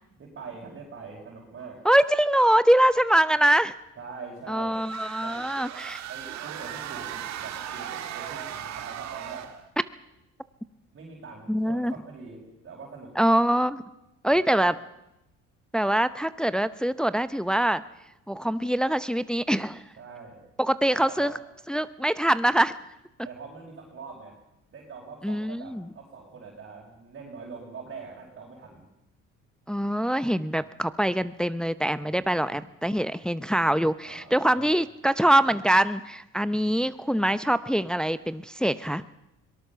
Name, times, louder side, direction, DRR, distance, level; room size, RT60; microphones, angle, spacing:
voice 1, 0.2-1.8 4.0-4.8 5.2-5.5 6.1-9.5 10.9-13.1 14.3-14.7 20.0-20.4 20.9-21.3 23.2-24.4 24.7-28.8 32.0-32.4 34.0-34.7, right 4 dB, 45° right, -3 dB, 5.1 m, -43 dB
voice 2, 1.8-3.7 4.5-6.0 11.5-11.9 13.2-13.8 14.2-14.8 15.7-17.8 18.3-19.8 20.6-21.3 21.7-22.8 25.2-25.9 29.7-39.0, right 1 dB, 5° left, 14 dB, 0.7 m, -24 dB
sound 1, 4.7-9.7, right 10 dB, 65° right, 2.1 m, -37 dB
22.5 x 19.0 x 6.9 m, 0.92 s
supercardioid pair, 90°, 29 cm